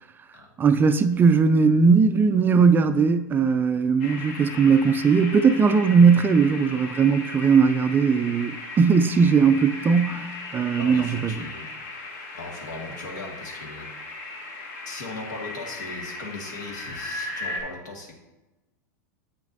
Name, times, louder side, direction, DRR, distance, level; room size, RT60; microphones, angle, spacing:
voice 1, 0.6-11.4, right 5 dB, 20° right, 0.3 m, -19 dB
sound 1, 4.0-17.6, left 2 dB, 55° left, 1.3 m, -37 dB
voice 2, 10.8-11.9 12.3-13.9 14.8-18.2, left 2 dB, 75° left, 1.5 m, -38 dB
8.0 x 6.1 x 2.6 m
hypercardioid pair, 105°, 10 cm